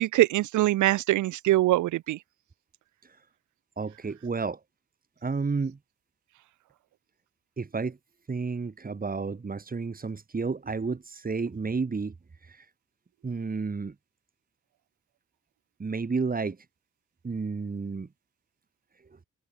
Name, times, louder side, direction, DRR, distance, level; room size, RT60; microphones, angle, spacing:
voice 1, 0.0-2.2, right 15 dB, 75° right, 0.8 m, -23 dB
voice 2, 3.8-4.6 5.2-5.8 7.6-8.0 8.3-12.1 12.5-12.6 13.2-13.9 15.8-16.6 17.2-18.1, right 4 dB, 30° right, 4.5 m, -31 dB
cardioid pair, 90°, 30 cm